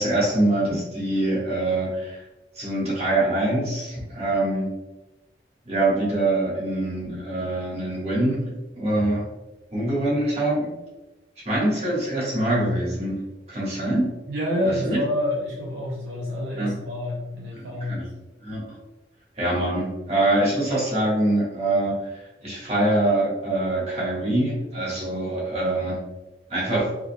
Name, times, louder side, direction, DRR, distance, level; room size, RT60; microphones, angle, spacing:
voice 1, 0.0-2.2 2.5-4.7 5.6-8.5 8.7-9.2 9.7-10.7 11.4-13.2 13.5-14.1 14.6-15.0 16.6-16.7 17.5-18.1 18.4-18.6 19.4-26.0 26.5-26.9, right 1 dB, 35° right, -6 dB, 1.4 m, -24 dB
voice 2, 14.3-18.1, left 1 dB, 70° right, -3 dB, 0.5 m, -28 dB
3.4 x 3.4 x 2.2 m, 1.1 s
head